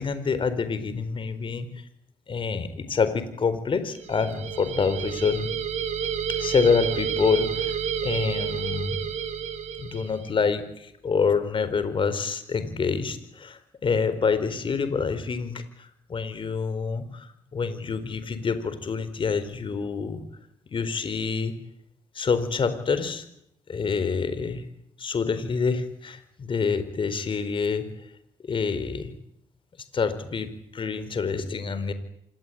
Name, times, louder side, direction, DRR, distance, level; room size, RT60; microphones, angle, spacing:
voice 1, 0.0-1.7 2.3-5.5 6.4-7.8 8.0-9.0 9.8-20.2 20.7-21.5 22.1-23.2 23.7-24.6 25.0-27.8 28.4-29.1 29.9-31.9, left 5 dB, 45° left, 12 dB, 4.4 m, -27 dB
sound 1, 3.9-10.3, right 8 dB, 65° right, 4.0 m, -30 dB
26.5 x 20.5 x 9.4 m, 0.74 s
cardioid pair, 90°, 12 cm